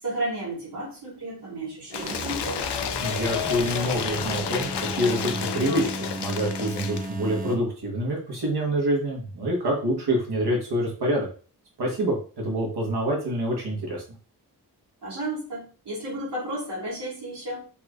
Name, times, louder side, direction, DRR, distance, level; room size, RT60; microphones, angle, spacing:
voice 1, 0.0-2.7 15.0-17.7, right 1 dB, 90° right, -5 dB, 2.3 m, -33 dB
Cheering / Applause / Crowd, 1.9-7.1, left 8 dB, 90° left, 0.5 m, -31 dB
sound 1, 1.9-7.6, right 1 dB, 20° right, 0.7 m, -35 dB
voice 2, 3.0-5.9 6.1-11.3 11.8-14.0, right 1 dB, 75° right, -1 dB, 1.6 m, -26 dB
5.9 x 3.2 x 2.6 m, 0.38 s
wide cardioid pair, 150°, 40 cm